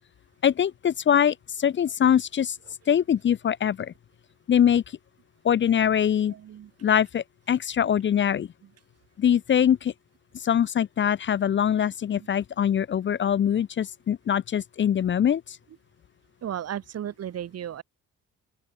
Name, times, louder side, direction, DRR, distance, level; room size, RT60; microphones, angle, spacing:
voice 1, 0.4-2.6 2.9-3.9 4.5-4.8 5.4-6.3 6.8-8.5 9.2-9.9 10.4-15.6, left 9 dB, 40° left, 0.5 m, -23 dB
voice 2, 6.3-6.7 8.6-8.7 12.1-12.3 16.4-17.8, right 10 dB, 55° right, 1.2 m, -35 dB
open air
cardioid pair, 90°, 30 cm